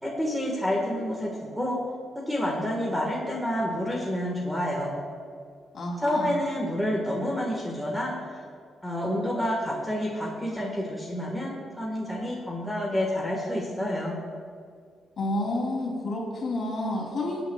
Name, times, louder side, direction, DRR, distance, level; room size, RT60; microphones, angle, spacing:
voice 1, 0.0-1.8 2.1-4.9 6.0-8.1 8.8-14.2, left 1 dB, ahead, -3 dB, 1.5 m, -29 dB
voice 2, 5.7-6.4 15.2-17.4, left 1 dB, 45° left, -2 dB, 2.9 m, -30 dB
21.5 x 8.9 x 2.3 m, 2.1 s
cardioid pair, 135°, 0 cm